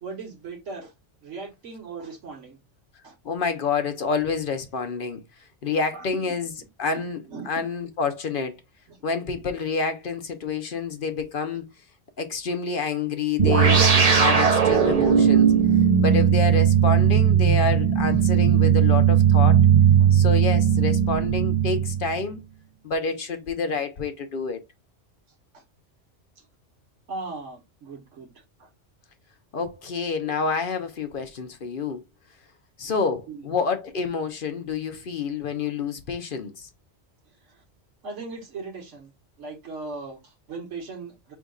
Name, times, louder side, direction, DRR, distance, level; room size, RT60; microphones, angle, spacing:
voice 1, 0.0-0.9 1.2-2.6 3.0-3.1 5.9-6.4 6.9-7.5 8.9-9.0 11.5-11.6 20.0-20.1 25.5-25.6 26.4-26.5 27.1-28.3 28.6-28.7 33.3-33.4 37.4-37.6 38.0-39.1 39.4-41.3, right 3 dB, 85° right, 1.6 m, -38 dB
voice 2, 3.2-5.2 5.6-6.5 6.8-8.6 9.0-11.6 12.2-15.5 16.0-19.6 20.1-22.4 22.8-24.6 29.5-32.0 32.8-36.7, left 5 dB, 55° left, 0.7 m, -28 dB
sound 1, 13.4-22.2, right 8 dB, 40° right, 0.6 m, -18 dB
5.0 x 3.5 x 2.3 m
omnidirectional pair, 1.2 m